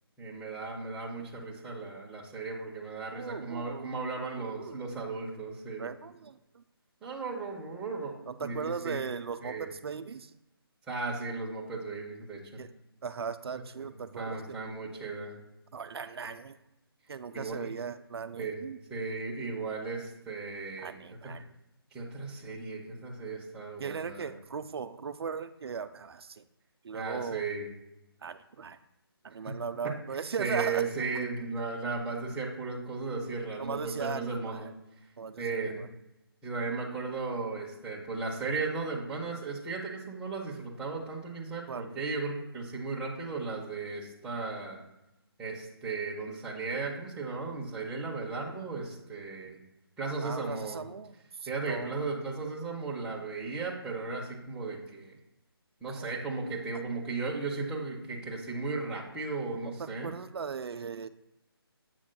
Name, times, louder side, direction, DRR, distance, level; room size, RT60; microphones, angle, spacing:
voice 1, 0.2-5.9 7.0-8.1 8.4-9.0 9.4-9.7 10.9-12.7 13.8-13.9 14.2-15.4 17.3-17.7 18.4-18.6 18.9-20.9 21.2-21.3 21.9-24.3 26.9-27.7 29.4-29.5 29.8-29.9 30.4-34.7 35.4-35.8 36.4-44.8 45.4-49.6 50.0-50.8 51.5-55.2 55.8-60.1, right 4 dB, 5° right, -5 dB, 0.7 m, -36 dB
voice 2, 3.1-4.1 4.4-4.8 5.8-6.6 8.3-10.3 12.6-12.7 13.0-14.6 15.7-16.6 17.1-18.8 20.8-21.5 23.8-26.4 26.8-27.4 28.2-28.8 29.2-30.9 33.6-34.7 35.2-35.9 41.7-41.9 50.2-52.0 55.9-56.2 59.8-61.1, right 6 dB, 75° right, 11 dB, 0.4 m, -38 dB
7.4 x 6.0 x 2.2 m, 0.92 s
hypercardioid pair, 160°, 13 cm